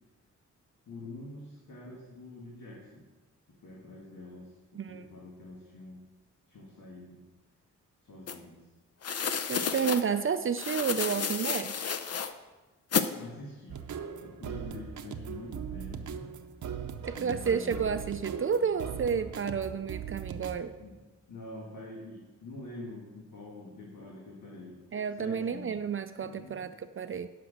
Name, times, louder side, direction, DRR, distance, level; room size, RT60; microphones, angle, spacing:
voice 1, 0.9-3.1 3.5-6.1 6.5-7.3 8.0-8.7 13.2-13.9 14.2-16.3 17.1-17.9 20.8-21.0 21.3-24.8 25.2-25.9 26.2-26.7, left 2 dB, 85° left, -4 dB, 1.9 m, -46 dB
voice 2, 4.8-5.1 9.5-11.7 17.1-20.7 24.9-27.3, right 6 dB, 45° right, 10 dB, 0.4 m, -31 dB
sound 1, 8.3-8.4 9.0-10.0 10.6-12.3 12.9-13.1, left 6 dB, 55° left, 0.7 m, -31 dB
sound 2, 13.7-20.7, right 7 dB, 75° right, 0.7 m, -39 dB
9.6 x 6.0 x 6.3 m, 1.2 s
wide cardioid pair, 100°, 30 cm